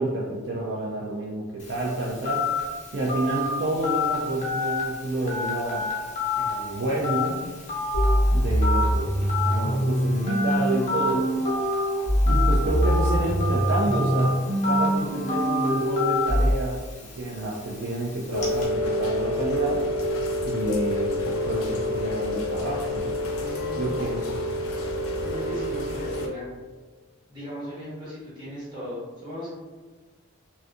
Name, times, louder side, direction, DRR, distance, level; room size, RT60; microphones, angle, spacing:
voice 1, 0.0-2.5 2.9-5.9 6.4-7.4 8.3-11.3 12.3-14.4 14.7-16.8 17.2-19.8 20.4-23.2 23.7-24.4, right 2 dB, 55° right, -5 dB, 0.4 m, -29 dB
Telephone, 1.6-18.7, left 3 dB, 35° left, 0.5 m, -30 dB
sound 1, 7.9-16.5, equal, 80° right, 1.0 m, -24 dB
Rain, 18.3-26.3, left 1 dB, 85° left, 0.4 m, -28 dB
voice 2, 23.4-24.5 25.2-26.5 27.3-29.5, left 1 dB, 20° right, -10 dB, 1.0 m, -37 dB
2.6 x 2.2 x 2.4 m, 1.3 s
head